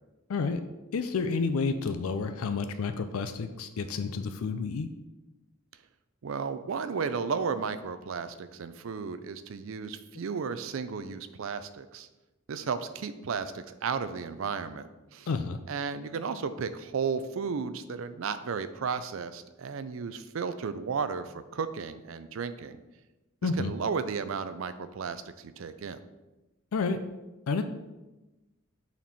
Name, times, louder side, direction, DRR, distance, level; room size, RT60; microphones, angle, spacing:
voice 1, 0.3-0.6 0.9-4.9 15.3-15.6 23.4-23.7 26.7-27.0 27.5-27.6, left 4 dB, 85° left, 8 dB, 0.4 m, -30 dB
voice 2, 6.2-12.1 12.5-15.3 15.7-22.8 23.4-26.0, right 5 dB, 70° right, 12 dB, 0.4 m, -34 dB
5.9 x 4.4 x 4.2 m, 1.1 s
head